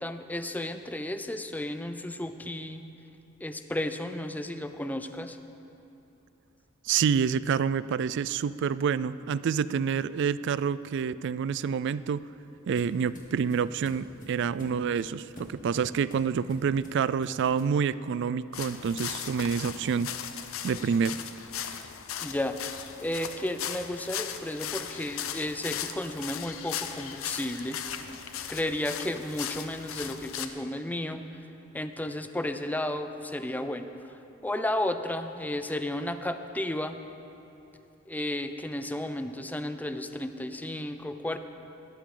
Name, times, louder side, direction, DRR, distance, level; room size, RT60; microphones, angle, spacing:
voice 1, 0.0-2.9 3.4-5.4 22.2-22.6 23.0-27.8 28.5-31.2 31.7-37.0 38.1-41.4, left 1 dB, 10° left, 8 dB, 0.5 m, -33 dB
voice 2, 6.9-12.3 12.7-20.1 20.6-21.2, right 6 dB, 60° right, 17 dB, 0.3 m, -28 dB
sound 1, 12.2-17.8, equal, 40° left, 1.9 m, -49 dB
sound 2, 18.5-30.5, left 9 dB, 85° left, 0.7 m, -37 dB
19.0 x 13.0 x 3.8 m, 2.9 s
head